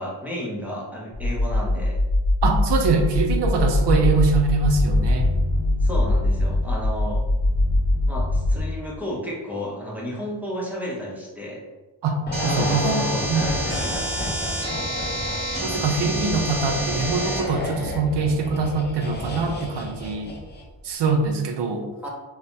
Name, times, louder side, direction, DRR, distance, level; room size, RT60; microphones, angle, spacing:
voice 1, 0.0-2.0 5.8-7.2 8.1-11.6 12.5-14.0 15.1-15.3 22.0-22.1, equal, 5° right, -4 dB, 0.7 m, -32 dB
sound 1, 1.1-8.6, left 1 dB, 70° left, 0.6 m, -21 dB
voice 2, 2.4-5.3 12.0-13.6 15.6-20.4 20.8-21.9, right 4 dB, 60° right, 4 dB, 0.5 m, -23 dB
sound 2, 12.3-20.8 21.1-21.2, left 1 dB, 25° left, 0.4 m, -31 dB
sound 3, 12.3-17.4, right 1 dB, 45° right, 1.1 m, -30 dB
2.5 x 2.1 x 3.2 m, 1.1 s
cardioid pair, 70°, 48 cm